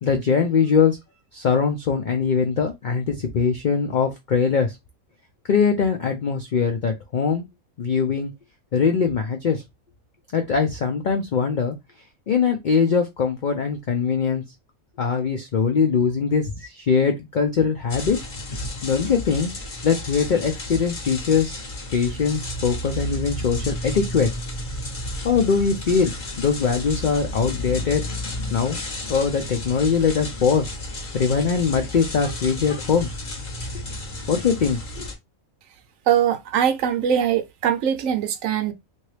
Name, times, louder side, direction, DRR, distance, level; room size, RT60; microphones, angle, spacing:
voice 1, 0.0-1.0 1.3-4.7 5.5-7.4 7.8-8.3 8.7-9.6 10.3-11.7 12.3-14.4 15.0-18.2 18.8-19.5 19.8-21.6 21.9-24.3 25.2-28.0 28.5-28.8 29.1-30.7 31.1-33.1 34.3-35.1, left 6 dB, 80° left, 0.4 m, -22 dB
sound 1, 17.9-35.1, left 1 dB, 40° left, 0.9 m, -32 dB
voice 2, 36.1-38.7, right 9 dB, 75° right, 1.0 m, -22 dB
2.9 x 2.7 x 3.1 m
omnidirectional pair, 1.5 m